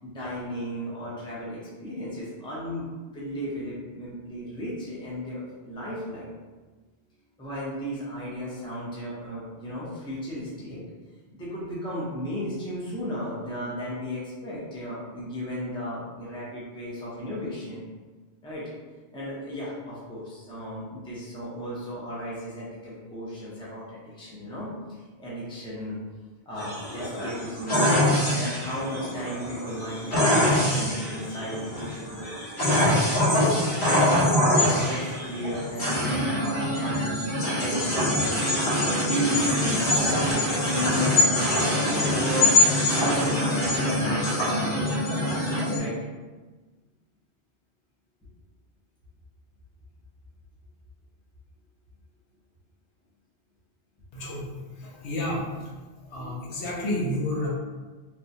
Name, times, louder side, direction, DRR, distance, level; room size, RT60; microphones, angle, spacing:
voice 1, 0.0-2.9 3.1-6.3 7.4-10.8 11.3-17.8 18.4-18.7 19.1-26.0 26.5-27.9 28.3-32.4 33.2-33.5 33.8-38.4 38.9-41.2 41.9-42.5 43.0-44.9 45.3-46.0, equal, 5° left, -8 dB, 0.6 m, -34 dB
sound 1, 26.6-45.8, left 1 dB, 50° left, 1.0 m, -24 dB
voice 2, 54.1-55.7 56.1-57.5, left 1 dB, 80° left, -4 dB, 1.0 m, -31 dB
3.0 x 2.2 x 2.6 m, 1.3 s
omnidirectional pair, 1.1 m